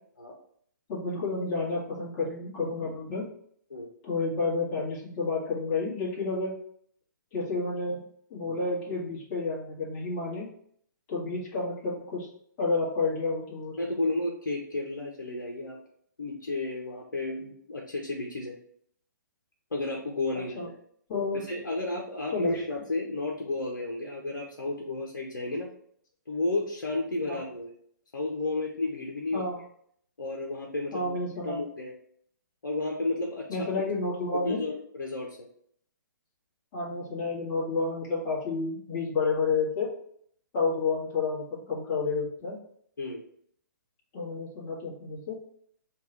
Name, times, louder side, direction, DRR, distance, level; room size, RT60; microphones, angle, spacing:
voice 1, 0.9-3.2 4.0-6.5 7.3-8.0 8.3-10.5 11.1-12.3 12.6-13.8 20.5-20.7 21.1-21.4 22.3-22.6 27.3-27.4 29.3-29.6 30.9-31.6 33.5-34.6 36.7-39.9 40.5-42.6 44.1-45.4, left 3 dB, 30° left, -6 dB, 1.6 m, -30 dB
voice 2, 13.8-15.8 16.2-18.6 19.7-20.7 21.3-25.7 26.3-27.7 28.1-29.4 30.2-31.1 31.4-31.9 32.6-33.7 34.4-35.5 43.0-43.2, left 2 dB, 90° left, -1 dB, 0.8 m, -32 dB
3.6 x 2.4 x 4.4 m, 0.64 s
hypercardioid pair, 140°, 11 cm